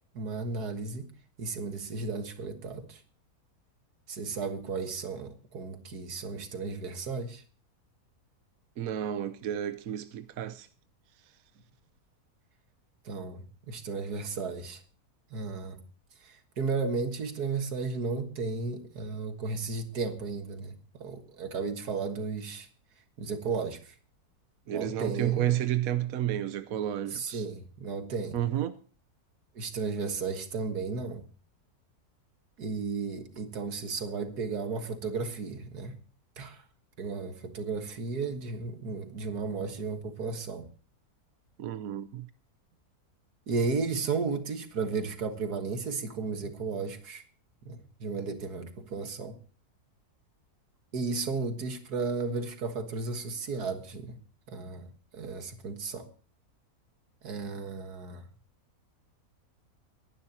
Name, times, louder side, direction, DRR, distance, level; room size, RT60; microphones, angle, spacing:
voice 1, 0.1-1.1 1.4-3.0 4.1-7.4 13.1-14.8 15.3-15.8 16.2-22.7 23.2-23.9 24.7-25.5 27.1-28.4 29.6-31.2 32.6-36.0 36.4-36.6 37.0-40.7 43.5-47.2 47.7-49.4 50.9-54.2 54.5-54.9 55.1-56.1 57.2-58.3, right 4 dB, 85° right, 2.1 m, -34 dB
voice 2, 8.8-10.7 24.7-27.5 28.3-28.8 41.6-42.3, right 11 dB, 65° right, 1.2 m, -31 dB
23.0 x 11.5 x 2.9 m
omnidirectional pair, 1.6 m